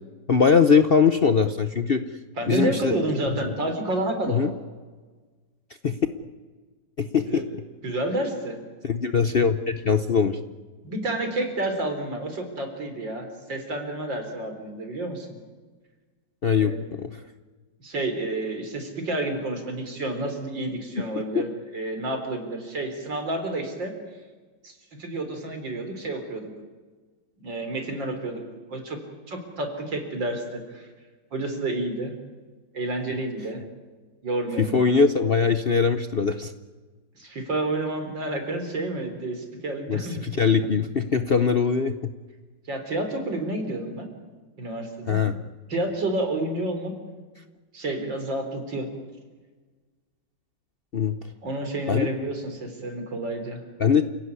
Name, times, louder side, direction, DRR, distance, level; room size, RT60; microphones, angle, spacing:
voice 1, 0.3-2.0 2.5-3.0 3.3-3.5 4.3-4.5 5.8-6.0 7.0-7.4 8.8-10.4 16.4-17.2 21.0-21.1 34.6-36.5 39.9-42.0 45.1-45.5 50.9-51.2 51.9-52.1 53.8-54.0, left 5 dB, 45° left, 9 dB, 0.8 m, -21 dB
voice 2, 2.4-4.4 7.3-7.4 7.8-8.6 10.8-15.4 16.6-16.9 17.8-23.9 24.6-24.7 25.0-26.5 27.4-28.4 28.7-29.0 29.3-30.9 31.3-32.1 32.7-33.6 34.2-34.7 37.2-40.3 42.7-44.1 44.6-45.2 45.7-46.9 47.7-48.9 51.4-53.6, right 2 dB, 80° right, 5 dB, 4.6 m, -30 dB
29.0 x 16.5 x 9.8 m, 1.4 s
omnidirectional pair, 2.0 m